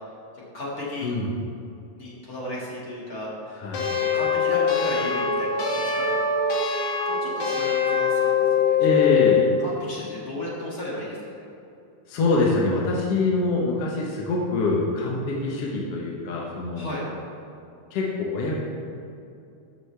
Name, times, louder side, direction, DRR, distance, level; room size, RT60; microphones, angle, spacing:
voice 1, 0.3-1.1 1.9-3.7 4.0-6.1 7.1-8.8 9.1-11.5 16.8-17.0, left 1 dB, 35° left, -6 dB, 1.8 m, -35 dB
sound 1, 3.7-9.5, left 6 dB, 85° left, 3.1 m, -23 dB
voice 2, 8.8-9.4 12.1-16.9 17.9-18.5, left 3 dB, 65° left, -3 dB, 1.6 m, -24 dB
13.5 x 6.6 x 3.4 m, 2.6 s
omnidirectional pair, 3.9 m